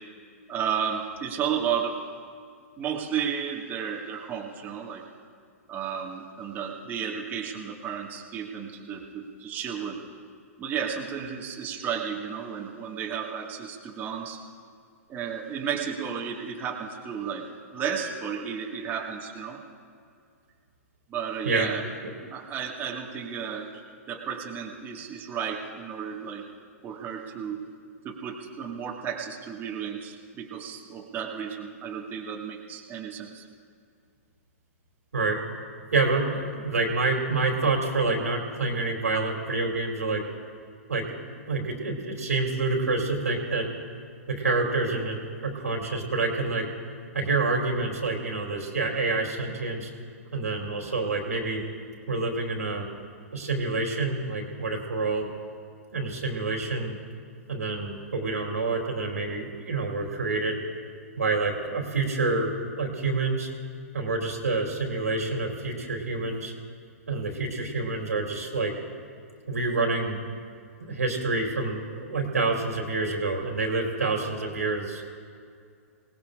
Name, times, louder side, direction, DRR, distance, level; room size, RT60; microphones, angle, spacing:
voice 1, 0.5-2.0 2.8-5.1 5.7-10.0 10.6-14.4 15.1-19.6 21.1-21.8 22.3-23.7 24.1-26.5 26.8-27.6 28.0-33.5, right 7 dB, 25° right, -2 dB, 1.8 m, -33 dB
voice 2, 35.9-40.2 40.9-41.2 41.5-43.7 44.3-46.7 47.1-49.9 50.3-51.6 52.1-52.9 53.3-55.3 55.9-56.9 57.5-60.6 61.2-63.5 63.9-66.5 67.1-68.7 69.5-70.2 70.8-75.0, right 3 dB, 90° right, 0 dB, 2.9 m, -27 dB
26.0 x 18.5 x 2.5 m, 2.3 s
hypercardioid pair, 120°, 8 cm